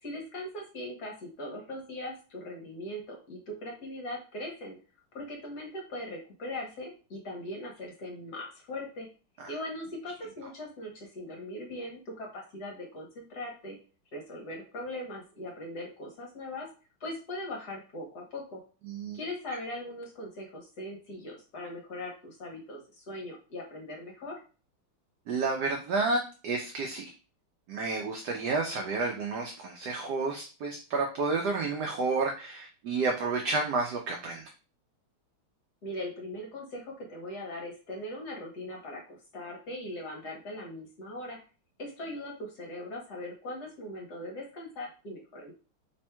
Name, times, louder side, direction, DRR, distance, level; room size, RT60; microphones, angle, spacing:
voice 1, 0.0-4.8 5.1-9.1 9.5-13.8 14.1-16.7 17.0-18.6 19.1-24.4 35.8-41.4 41.8-45.5, left 1 dB, 55° left, -1 dB, 1.3 m, -40 dB
voice 2, 18.9-19.2 25.3-27.1 27.7-34.4, right 3 dB, 90° right, 2 dB, 0.9 m, -30 dB
4.3 x 3.4 x 2.2 m, 0.36 s
omnidirectional pair, 2.4 m